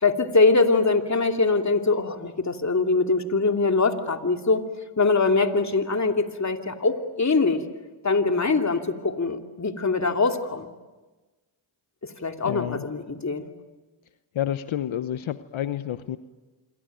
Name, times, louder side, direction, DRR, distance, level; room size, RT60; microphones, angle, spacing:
voice 1, 0.0-4.6 5.0-7.6 8.0-10.7 12.2-13.5, left 3 dB, 35° left, 5 dB, 2.8 m, -23 dB
voice 2, 12.4-12.8 14.3-16.2, left 11 dB, 75° left, 12 dB, 1.0 m, -29 dB
27.0 x 23.5 x 9.3 m, 1.2 s
cardioid pair, 55°, 49 cm